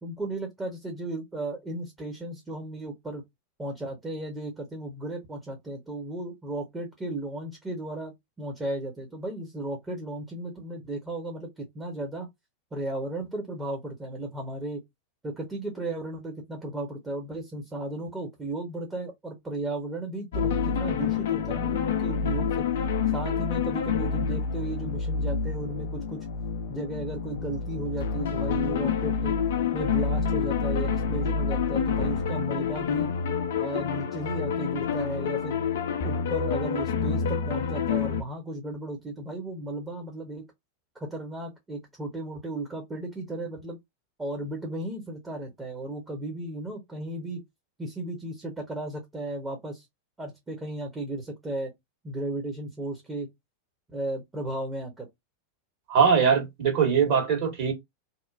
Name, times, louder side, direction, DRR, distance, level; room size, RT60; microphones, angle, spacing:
voice 1, 0.0-3.2 3.6-12.3 12.7-14.8 15.2-22.6 23.1-26.2 26.7-29.3 29.7-33.1 33.6-35.6 36.0-40.4 40.9-43.8 44.2-47.4 47.8-49.8 50.2-51.7 52.0-53.3 53.9-55.1, right 1 dB, 15° right, 0.9 m, -35 dB
sound 1, 20.3-38.2, left 6 dB, 60° left, 0.4 m, -28 dB
voice 2, 55.9-57.7, right 6 dB, 45° right, 1.5 m, -21 dB
2.8 x 2.1 x 2.4 m
figure-of-eight pair, 90°, 0 cm